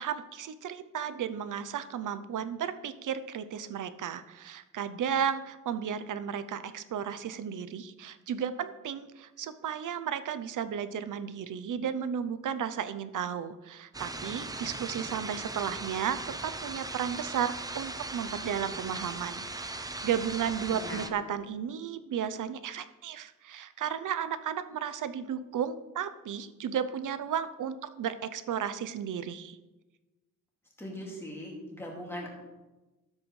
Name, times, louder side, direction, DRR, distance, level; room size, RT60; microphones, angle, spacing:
voice 1, 0.0-29.6, right 8 dB, 70° right, 12 dB, 0.6 m, -34 dB
sound 1, 13.9-21.1, right 2 dB, 10° right, 0.4 m, -39 dB
voice 2, 20.7-21.1 30.8-32.3, left 1 dB, 5° left, -3 dB, 2.2 m, -40 dB
13.0 x 7.6 x 3.2 m, 1.1 s
wide cardioid pair, 175°, 33 cm